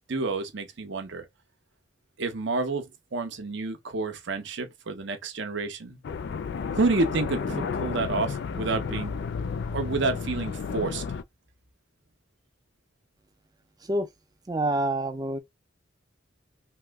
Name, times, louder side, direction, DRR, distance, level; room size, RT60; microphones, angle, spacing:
voice 1, 0.1-1.2 2.2-6.0 6.7-9.2 9.7-11.0, right 3 dB, 65° right, 0.7 m, -29 dB
sound 1, 6.0-11.2, left 5 dB, 60° left, 0.3 m, -32 dB
voice 2, 14.5-15.4, right 1 dB, 20° right, 0.5 m, -27 dB
2.9 x 2.1 x 3.4 m
head